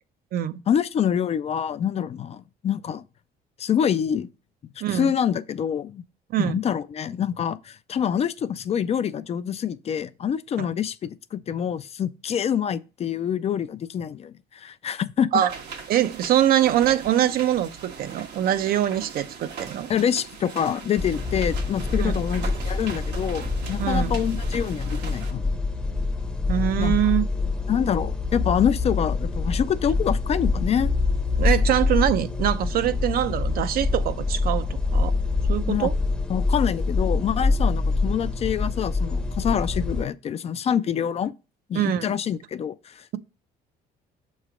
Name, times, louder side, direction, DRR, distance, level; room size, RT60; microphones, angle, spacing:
voice 1, 0.7-3.0 3.6-4.3 4.9-6.0 6.4-15.3 19.9-25.5 26.8-27.0 27.7-30.9 35.7-35.9 36.3-41.3 41.7-43.2, left 8 dB, 40° left, 0.4 m, -26 dB
voice 2, 4.8-5.1 6.3-6.6 10.6-10.7 15.3-15.5 15.9-19.9 22.0-22.2 23.8-24.2 26.5-27.2 31.4-35.1 35.5-36.0 41.7-42.2, right 11 dB, 60° right, 0.6 m, -23 dB
sound 1, 15.5-25.3, right 6 dB, 85° right, 1.3 m, -40 dB
sound 2, 21.0-40.0, left 3 dB, 5° left, 0.7 m, -25 dB
6.5 x 3.1 x 4.9 m
cardioid pair, 110°, 17 cm